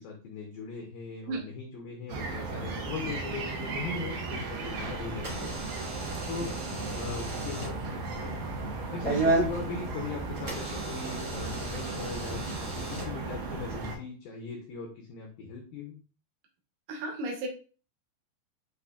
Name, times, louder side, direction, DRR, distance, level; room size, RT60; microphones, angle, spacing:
voice 1, 0.0-5.5 6.3-6.6 6.9-8.4 8.8-16.0, left 5 dB, 90° left, 0 dB, 2.0 m, -39 dB
sound 1, 2.1-14.0, right 3 dB, 90° right, 1.8 m, -36 dB
Door / Alarm, 4.5-13.7, right 2 dB, 55° right, 0.9 m, -35 dB
voice 2, 16.9-17.5, right 2 dB, 75° right, 1 dB, 2.0 m, -34 dB
8.2 x 2.8 x 2.3 m, 0.37 s
omnidirectional pair, 5.3 m